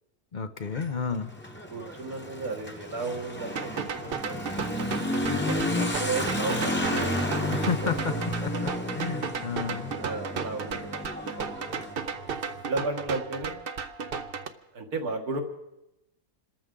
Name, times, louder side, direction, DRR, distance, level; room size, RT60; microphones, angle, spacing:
voice 1, 0.3-1.3 7.5-8.2 8.4-9.9, left 6 dB, 40° left, 10 dB, 0.7 m, -31 dB
Motorcycle / Accelerating revving vroom, 0.6-12.9, left 1 dB, 10° left, 1.1 m, -32 dB
voice 2, 1.7-4.8 5.4-7.9 8.8-8.9 10.0-11.6 12.7-13.6 14.7-15.4, right 3 dB, 75° right, 4 dB, 2.1 m, -34 dB
sound 1, 3.6-14.5, right 5 dB, 50° right, 0.8 m, -35 dB
26.5 x 14.0 x 3.8 m, 0.91 s
omnidirectional pair, 1.6 m